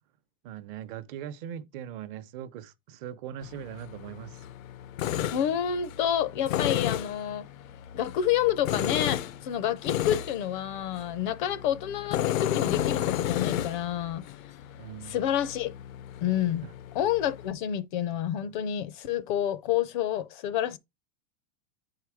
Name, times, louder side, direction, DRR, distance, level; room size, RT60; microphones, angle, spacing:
voice 1, 0.4-4.4 14.8-15.2, right 10 dB, 40° right, 0.8 m, -40 dB
Tools, 3.4-17.5, left 12 dB, 85° left, 0.8 m, -33 dB
voice 2, 5.3-7.5 7.9-14.2 15.0-15.7 16.2-16.7 16.9-20.8, left 10 dB, 40° left, 0.5 m, -29 dB
9.6 x 4.8 x 4.7 m
supercardioid pair, 165°, 39 cm